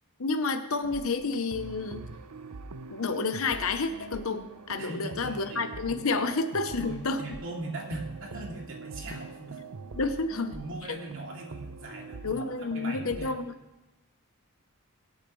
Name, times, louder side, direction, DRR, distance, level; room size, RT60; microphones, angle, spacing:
voice 1, 0.2-2.0 2.9-7.2 9.9-10.5 10.9-11.0 12.2-13.5, left 3 dB, 65° left, 8 dB, 0.8 m, -30 dB
sound 1, 0.8-13.3, right 4 dB, 90° right, 0.7 m, -44 dB
voice 2, 4.8-6.0 6.8-9.6 10.5-13.4, right 2 dB, 60° right, -1 dB, 2.7 m, -40 dB
23.0 x 8.4 x 3.2 m, 1.0 s
head